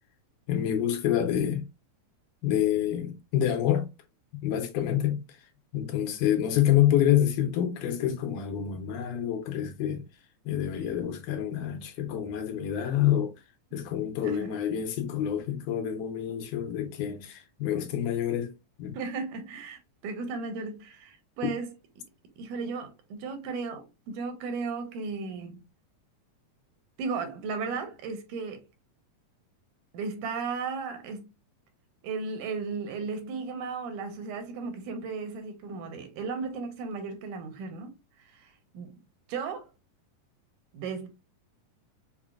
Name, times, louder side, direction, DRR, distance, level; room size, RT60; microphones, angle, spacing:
voice 1, 0.5-1.6 2.4-3.9 4.3-5.2 5.7-10.0 10.5-13.3 13.7-18.5 18.8-19.0 21.4-21.5, left 10 dB, 75° left, 2.1 m, -27 dB
voice 2, 18.9-21.7 22.4-25.6 27.0-28.7 29.9-31.3 32.0-39.0 39.3-39.7 40.7-41.1, right 4 dB, 80° right, 2.2 m, -35 dB
5.7 x 2.2 x 2.3 m
omnidirectional pair, 3.7 m